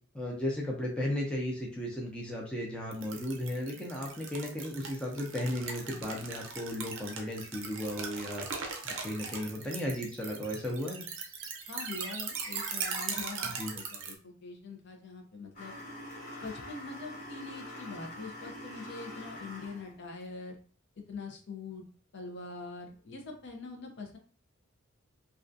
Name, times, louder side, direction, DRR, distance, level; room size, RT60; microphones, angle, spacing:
voice 1, 0.1-8.5 8.8-11.0 13.4-13.7, left 1 dB, 5° left, -3 dB, 0.4 m, -35 dB
sound 1, 2.9-14.1, right 5 dB, 65° right, 0.5 m, -39 dB
voice 2, 11.7-15.7 16.4-20.5 21.1-21.8 22.1-24.2, left 3 dB, 55° left, 2 dB, 0.5 m, -43 dB
sound 2, 15.5-19.9, left 1 dB, 35° left, 1.2 m, -45 dB
2.3 x 2.2 x 2.5 m, 0.42 s
head